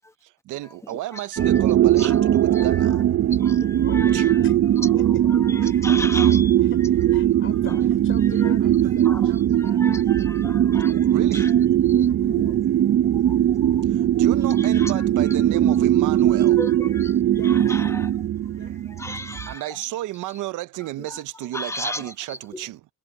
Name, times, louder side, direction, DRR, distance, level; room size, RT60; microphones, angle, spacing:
voice 1, 0.2-3.0 4.1-4.3 5.0-5.8 6.1-6.2 8.6-8.9 9.3-10.4 10.9-11.6 13.1-13.4 13.9-16.6 18.5-18.8 19.1-22.9, right 16 dB, 85° right, 0.8 m, -34 dB
voice 2, 1.1-1.5 2.0-2.2 2.5-3.0 3.4-4.3 4.8-5.0 5.3-6.5 8.4-8.5 9.0-9.2 9.5-11.0 11.3-11.5 12.2-12.6 13.2-13.8 14.1-14.2 14.6-15.3 15.6-15.7 16.6-17.2 17.4-18.1 18.9-19.6 21.1-21.2 21.5-22.0 22.3-22.6, left 2 dB, 10° left, 1.1 m, -35 dB
sound 1, 1.4-19.5, right 11 dB, 50° right, 0.6 m, -20 dB
voice 3, 3.8-4.6 4.9-5.2 5.5-5.9 6.3-6.8 7.1-9.4 11.9-12.3 17.3-17.6 18.5-18.7, left 6 dB, 45° left, 5.4 m, -43 dB
cardioid pair, 90°, 30 cm